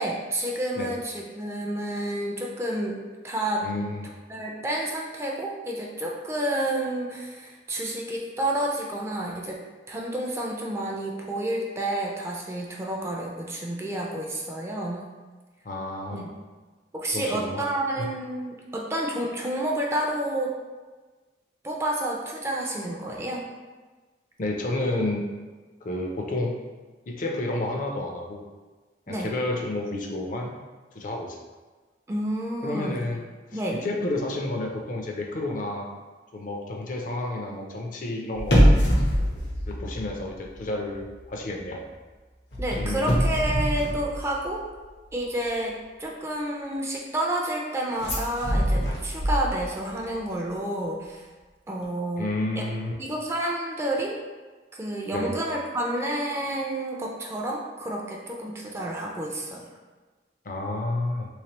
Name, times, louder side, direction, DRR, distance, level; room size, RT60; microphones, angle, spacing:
voice 1, 0.0-3.6 4.3-9.6 9.9-15.1 16.1-16.3 16.9-20.5 21.6-23.4 29.1-29.3 32.1-32.9 33.5-33.8 42.6-44.7 45.1-51.3 51.7-52.3 52.6-52.7 53.0-54.2 54.7-59.6, right 1 dB, 15° right, -2 dB, 0.4 m, -30 dB
voice 2, 3.6-4.1 15.6-16.3 17.1-17.6 18.0-18.1 24.4-25.3 25.8-26.6 27.1-28.4 29.1-30.5 30.9-31.4 32.6-33.2 33.5-35.9 36.3-38.7 39.7-41.8 42.8-43.2 52.2-52.9 55.1-55.3 60.4-61.3, left 2 dB, 45° left, 1 dB, 0.5 m, -30 dB
sound 1, 38.4-40.6 40.9-41.2 42.5-44.7 48.0-49.9 50.2-50.3, equal, 90° left, 0.9 m, -23 dB
3.3 x 3.2 x 2.9 m, 1.3 s
head